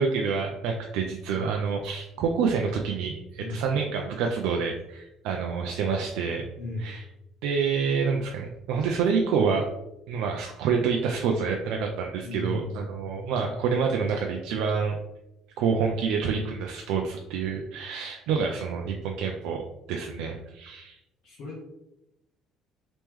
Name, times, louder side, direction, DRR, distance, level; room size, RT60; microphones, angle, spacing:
voice 1, 0.0-6.5 6.8-7.0 7.4-9.7 10.1-15.0 15.6-19.6 19.9-21.0, right 5 dB, 80° right, 2 dB, 0.3 m, -27 dB
voice 2, 1.3-1.6 3.4-3.6 6.6-6.9 12.2-12.9 21.2-21.7, left 1 dB, 55° left, -3 dB, 0.8 m, -35 dB
3.0 x 3.0 x 3.5 m, 0.92 s
cardioid pair, 175°, 0 cm